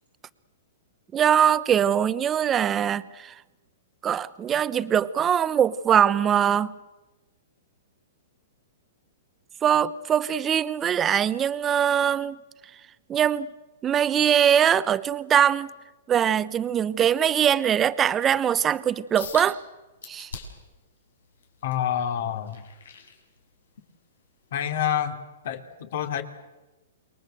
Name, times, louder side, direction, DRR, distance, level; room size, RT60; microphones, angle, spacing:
voice 1, 1.1-3.3 4.0-6.7 9.6-12.4 13.1-13.5 13.8-15.7 16.1-19.6 20.1-20.3, right 9 dB, 20° right, 15 dB, 0.9 m, -22 dB
sound 1, 19.2-19.5 20.0-20.7 21.2-23.8 24.2-24.5 25.0-25.1, left 5 dB, 90° left, 6.6 m, -42 dB
voice 2, 21.6-22.6 24.5-26.2, left 9 dB, 65° left, 7 dB, 3.1 m, -28 dB
28.0 x 22.5 x 7.9 m, 1.1 s
hypercardioid pair, 145°, 0 cm